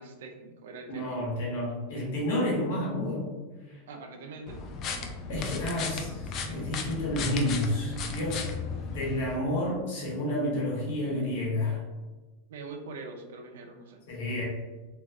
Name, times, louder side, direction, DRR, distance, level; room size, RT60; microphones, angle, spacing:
voice 1, 0.0-1.2 3.9-4.6 12.5-14.0, right 3 dB, 80° right, 4 dB, 0.5 m, -43 dB
voice 2, 0.9-3.3 3.7-3.8 5.3-8.4 8.9-11.8 14.1-14.4, left 1 dB, 75° left, -4 dB, 1.3 m, -30 dB
sound 1, 4.5-9.4, left 4 dB, 40° left, 0.4 m, -35 dB
3.1 x 2.3 x 2.4 m, 1.2 s
supercardioid pair, 120°, 0 cm